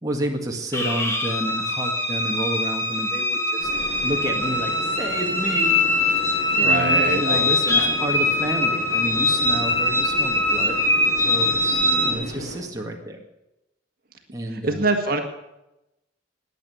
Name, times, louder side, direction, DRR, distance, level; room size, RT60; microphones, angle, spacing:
voice 1, 0.0-3.7 4.0-6.2 6.5-10.7 11.2-13.2 14.3-14.9, right 1 dB, 20° right, 0 dB, 1.9 m, -30 dB
sound 1, 0.7-12.1, left 2 dB, 15° left, 2.1 m, -22 dB
sound 2, 3.6-12.6, equal, 65° left, 5.8 m, -36 dB
voice 2, 6.5-8.2 11.6-12.4 14.5-15.2, right 3 dB, 50° right, 4 dB, 1.8 m, -27 dB
20.5 x 8.4 x 7.1 m, 0.90 s
head